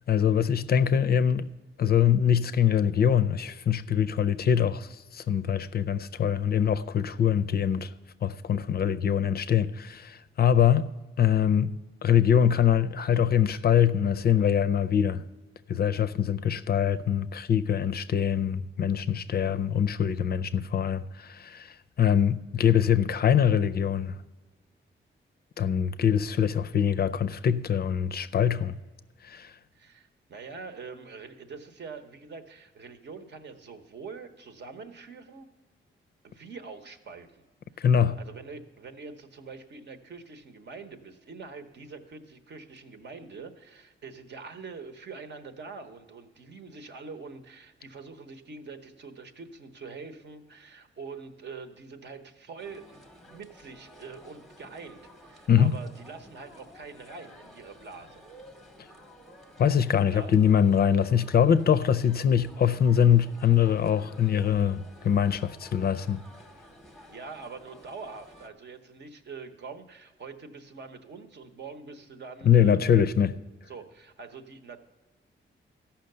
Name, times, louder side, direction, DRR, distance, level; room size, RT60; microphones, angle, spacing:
voice 1, 0.1-1.5 1.8-7.9 8.2-10.9 11.2-11.7 12.0-15.2 15.7-24.2 25.6-28.7 29.2-29.5 37.8-38.2 55.5-55.7 59.6-66.2 72.5-73.3, left 8 dB, 50° left, 0.4 m, -23 dB
voice 2, 29.7-35.5 36.2-37.4 37.7-58.2 60.1-60.3 67.1-73.1 73.7-74.8, right 4 dB, 55° right, 1.0 m, -44 dB
sound 1, 52.6-68.5, equal, ahead, 0.8 m, -52 dB
14.0 x 5.8 x 6.6 m
wide cardioid pair, 135°, 21 cm